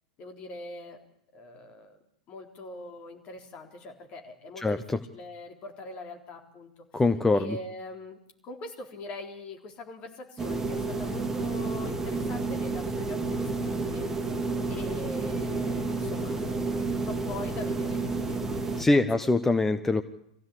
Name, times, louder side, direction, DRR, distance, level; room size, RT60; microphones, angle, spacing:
voice 1, 0.2-1.0 1.3-2.0 2.3-4.8 5.1-7.0 7.3-14.1 14.7-18.4 18.8-19.3, left 2 dB, 35° left, 3 dB, 3.8 m, -43 dB
voice 2, 4.6-5.0 6.9-7.6 18.8-20.0, left 2 dB, 10° left, 9 dB, 1.0 m, -24 dB
sound 1, 10.4-18.8, right 3 dB, 10° right, 2.8 m, -30 dB
24.5 x 15.5 x 8.6 m, 0.74 s
figure-of-eight pair, 95°, 4 cm